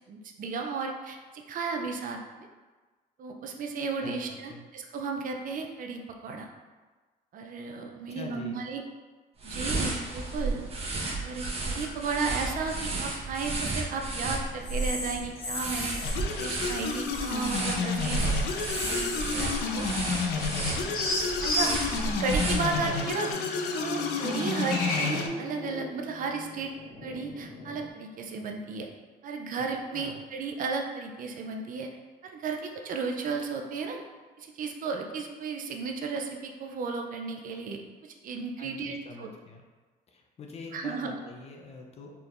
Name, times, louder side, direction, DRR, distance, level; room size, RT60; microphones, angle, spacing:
voice 1, 0.1-2.5 3.2-6.5 7.3-8.8 9.4-10.7 11.2-18.3 18.9-19.9 21.4-21.8 22.1-23.3 23.7-26.7 27.0-28.9 29.2-31.9 32.2-34.0 34.4-39.3 40.7-41.2, right 4 dB, 55° right, 3 dB, 0.5 m, -34 dB
voice 2, 4.0-4.6 8.1-8.6 22.7-22.9 29.6-29.7 29.9-30.2 38.6-39.6 40.1-42.2, left 3 dB, 40° left, 1 dB, 0.6 m, -44 dB
sound 1, 9.4-23.1, right 2 dB, 35° right, 1.0 m, -33 dB
sound 2, 14.6-16.2 16.5-17.6 18.0-19.6 19.9-20.0 20.5-27.9, left 1 dB, 60° left, 1.1 m, -36 dB
sound 3, 16.0-25.3, left 4 dB, 80° left, 0.5 m, -31 dB
4.5 x 3.5 x 2.5 m, 1.3 s
cardioid pair, 110°, 17 cm